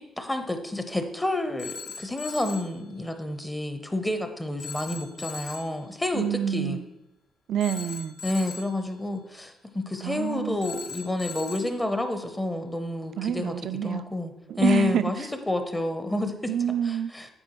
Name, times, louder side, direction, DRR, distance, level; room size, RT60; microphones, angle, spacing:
voice 1, 0.0-6.8 8.2-13.5 13.8-14.3 14.6-16.3 16.8-17.3, left 2 dB, 10° left, 7 dB, 0.6 m, -29 dB
Telephone, 1.6-2.8 4.6-5.8 7.6-8.8 10.6-11.8, left 5 dB, 60° left, 0.7 m, -39 dB
voice 2, 6.1-6.9 7.5-8.1 10.0-10.6 13.2-14.0 14.5-15.1 16.5-17.1, right 9 dB, 70° right, 12 dB, 0.3 m, -27 dB
8.8 x 4.3 x 2.9 m, 0.90 s
cardioid pair, 90°, 0 cm